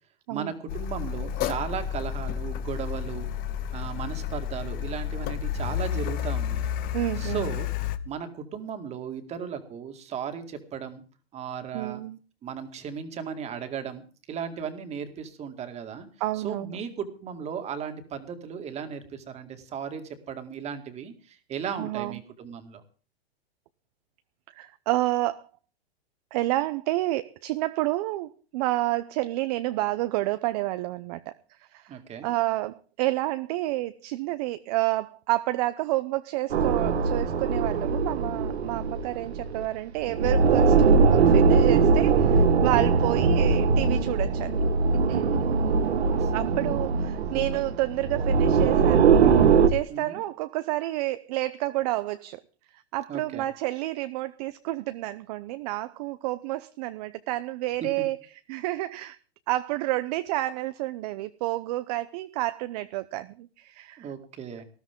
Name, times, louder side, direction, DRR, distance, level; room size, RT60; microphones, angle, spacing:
voice 1, 0.3-3.3 3.7-6.7 7.2-7.7 8.1-11.0 11.3-12.0 12.4-14.0 14.3-16.1 16.4-22.8 31.9-32.3 45.3-45.8 46.2-46.3 46.7-46.8 47.3-47.6 49.9-50.2 53.1-53.4 64.0-64.6, right 7 dB, 20° right, 2.2 m, -36 dB
Car, 0.7-8.0, left 9 dB, 30° left, 1.1 m, -31 dB
voice 2, 6.9-7.5 11.7-12.2 16.2-16.8 21.8-22.2 24.5-25.5 26.3-44.6 45.1-45.3 46.3-49.2 49.7-52.4 52.9-58.2 58.5-59.2 59.5-64.1, right 17 dB, 40° right, 0.7 m, -29 dB
sound 1, 36.5-39.7 40.0-49.7, right 5 dB, 85° right, 1.9 m, -21 dB
19.5 x 13.5 x 3.7 m
hypercardioid pair, 150°, 32 cm